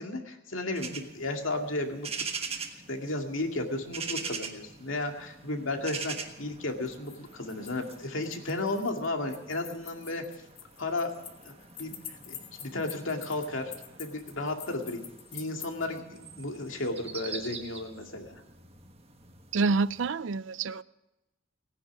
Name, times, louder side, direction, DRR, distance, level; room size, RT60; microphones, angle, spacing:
voice 1, 0.0-2.1 2.3-2.4 2.9-10.2 10.8-11.1 11.4-11.5 11.8-13.7 14.0-16.0 16.4-18.4, left 2 dB, 75° left, 2.2 m, -34 dB
sound 1, 0.7-20.1, right 5 dB, 30° right, 1.4 m, -43 dB
sound 2, 6.7-16.0, left 9 dB, 45° left, 1.5 m, -47 dB
voice 2, 19.5-20.8, right 4 dB, 65° right, 0.5 m, -27 dB
18.5 x 10.0 x 7.2 m
head